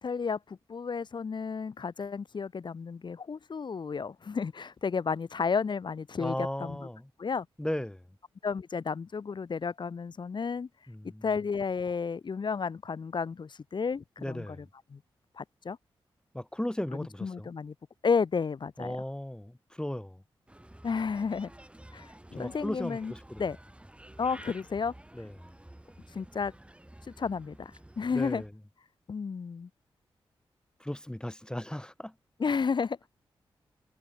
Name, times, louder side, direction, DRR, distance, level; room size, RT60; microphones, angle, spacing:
voice 1, 0.0-6.8 7.2-7.5 8.4-10.7 11.2-14.6 14.9-15.0 15.4-15.8 17.2-17.7 18.0-18.9 20.8-21.5 21.9-23.1 23.4-23.6 24.2-24.9 26.1-26.5 27.1-28.4 29.1-29.7 32.4-33.0, left 5 dB, 55° left, 1.4 m, -32 dB
voice 2, 6.2-7.1 7.6-8.0 10.9-11.3 14.2-14.6 16.3-17.5 18.8-20.2 22.4-23.4 25.1-25.3 28.1-28.5 30.8-32.1, left 1 dB, 10° left, 0.8 m, -36 dB
Bird, 20.5-28.5, right 1 dB, 10° right, 4.6 m, -51 dB
cardioid pair, 55°, 10 cm